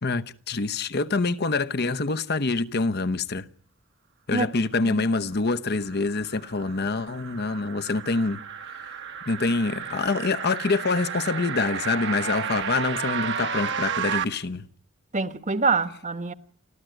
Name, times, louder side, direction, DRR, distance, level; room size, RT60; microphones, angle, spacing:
voice 1, 0.0-3.5 4.3-8.4 8.8-8.9 9.3-14.7, left 3 dB, 55° left, 1.0 m, -26 dB
sound 1, 5.9-14.2, right 7 dB, 60° right, 1.2 m, -32 dB
voice 2, 15.1-16.3, right 4 dB, 35° right, 1.2 m, -25 dB
29.0 x 13.5 x 9.2 m
head